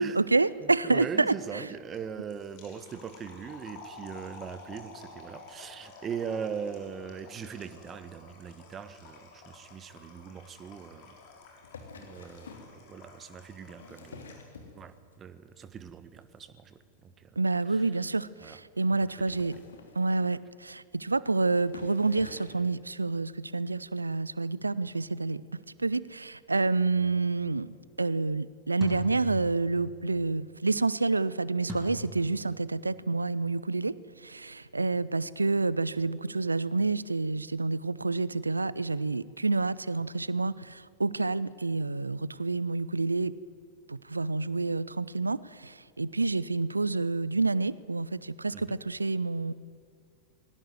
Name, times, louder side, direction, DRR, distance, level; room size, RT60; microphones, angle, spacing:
voice 1, 0.0-1.7 17.4-19.6 19.9-27.7 28.0-43.4 43.9-49.5, right 3 dB, 80° right, 20 dB, 0.6 m, -28 dB
voice 2, 0.6-11.1 11.9-14.4 14.7-17.3 17.7-17.8 18.4-18.6 48.5-48.8, right 7 dB, 25° right, 13 dB, 1.5 m, -40 dB
sound 1, 1.9-14.6, left 4 dB, 45° left, 5.9 m, -51 dB
sound 2, 11.6-12.7 13.6-15.1 15.5-15.9 16.2-16.4 16.6-16.7 16.9-17.0 17.4-17.5 18.1-18.2 19.1-20.5 21.2-21.3 21.6-22.7 23.5-23.6, left 4 dB, 70° left, 3.2 m, -48 dB
sound 3, 26.8-27.2 28.8-30.0 31.7-31.8, left 1 dB, 5° right, 6.8 m, -39 dB
21.0 x 18.5 x 9.4 m, 2.4 s
figure-of-eight pair, 90°, 0 cm